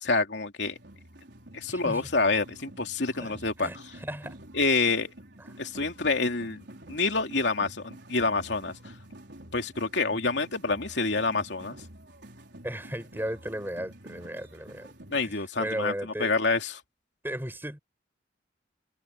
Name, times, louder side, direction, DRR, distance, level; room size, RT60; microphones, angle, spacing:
voice 1, 0.0-0.8 1.5-3.7 4.5-5.1 5.6-6.6 6.9-8.7 9.5-11.8 15.1-15.9 16.2-16.7, left 3 dB, 75° left, 2.8 m, -27 dB
sound 1, 0.7-15.3, right 1 dB, 75° right, 4.3 m, -49 dB
voice 2, 1.7-2.1 3.2-3.3 3.6-4.4 5.4-5.5 12.6-14.9 15.2-16.3 17.2-17.8, equal, 10° right, 4.7 m, -36 dB
head